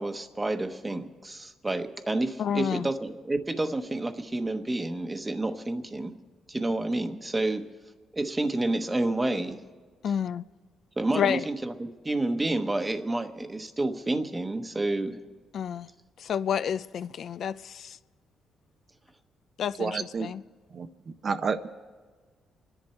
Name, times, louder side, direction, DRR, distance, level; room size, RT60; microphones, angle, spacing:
voice 1, 0.0-6.1 6.5-7.6 8.1-9.6 11.0-15.2, right 2 dB, 15° right, 1.0 m, -29 dB
voice 2, 2.4-2.9 10.0-10.4 11.2-11.4 15.5-15.9 16.3-17.5 19.6-20.4, left 8 dB, 60° left, 0.3 m, -29 dB
voice 3, 19.8-20.3 20.7-20.9 21.2-21.7, right 5 dB, 45° right, 0.6 m, -29 dB
28.0 x 10.5 x 4.4 m
cardioid pair, 105°, 0 cm